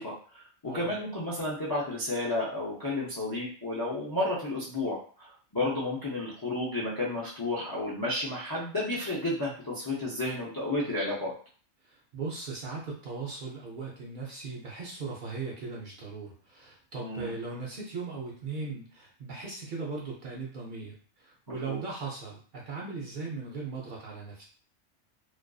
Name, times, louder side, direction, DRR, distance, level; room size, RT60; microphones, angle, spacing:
voice 1, 0.0-5.3 5.5-11.3 17.0-17.3 21.7-21.8, left 2 dB, 35° left, -6 dB, 0.3 m, -32 dB
voice 2, 11.9-24.4, right 4 dB, 55° right, -3 dB, 0.7 m, -38 dB
2.4 x 2.4 x 2.3 m, 0.42 s
omnidirectional pair, 1.2 m